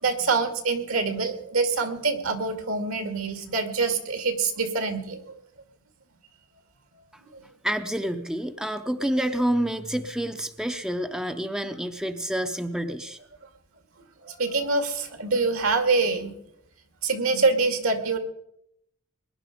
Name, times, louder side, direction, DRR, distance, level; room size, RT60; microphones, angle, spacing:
voice 1, 0.0-5.4 14.3-16.3 17.0-18.2, right 4 dB, 70° right, 8 dB, 2.2 m, -25 dB
voice 2, 7.6-13.2, right 1 dB, 5° right, 8 dB, 0.6 m, -28 dB
21.0 x 11.0 x 5.1 m, 0.74 s
head